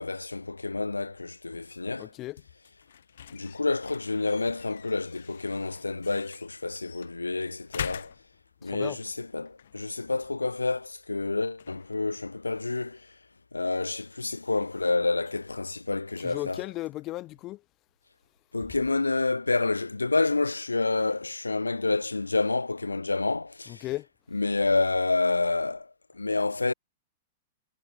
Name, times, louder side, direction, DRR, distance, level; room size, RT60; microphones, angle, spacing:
voice 1, 0.0-2.1 3.3-8.1 8.6-13.0 13.5-16.6 18.5-23.8 24.3-25.9 26.1-26.7, left 3 dB, 85° left, 1.9 m, -28 dB
sound 1, 0.9-13.6, left 9 dB, 65° left, 2.8 m, -46 dB
voice 2, 2.0-2.4 8.6-9.0 16.2-17.6 23.7-24.1, left 17 dB, 35° left, 1.9 m, -36 dB
figure-of-eight pair, 100°, 0 cm